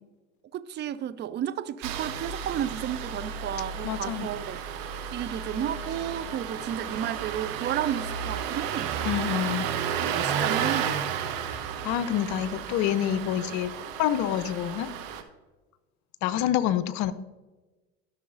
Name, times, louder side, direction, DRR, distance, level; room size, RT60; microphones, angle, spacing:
voice 1, 0.5-4.6 5.1-9.0 10.0-11.0, right 10 dB, 30° right, 0.4 m, -32 dB
Engine starting, 1.8-15.2, right 8 dB, 60° right, 1.0 m, -32 dB
voice 2, 3.8-4.3 9.0-9.7 11.8-13.7 14.0-14.9 16.2-17.1, left 11 dB, 50° left, 0.7 m, -27 dB
13.0 x 6.4 x 2.5 m
hypercardioid pair, 80°, 37 cm